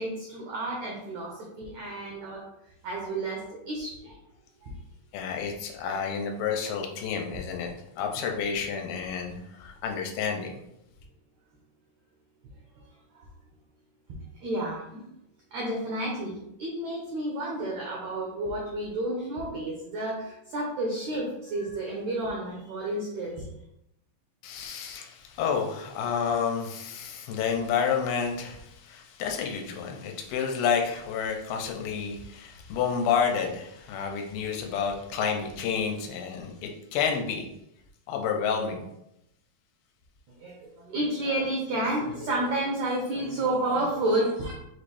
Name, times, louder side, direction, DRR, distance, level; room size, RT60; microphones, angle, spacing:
voice 1, 0.0-2.4 2.8-4.2 4.6-4.7 14.4-15.0 15.5-23.4 40.4-44.5, right 1 dB, 85° right, -2 dB, 1.6 m, -31 dB
voice 2, 5.1-10.5 24.4-37.5 38.1-38.8, left 6 dB, 90° left, 2 dB, 2.5 m, -30 dB
6.0 x 2.6 x 3.4 m, 0.81 s
omnidirectional pair, 4.3 m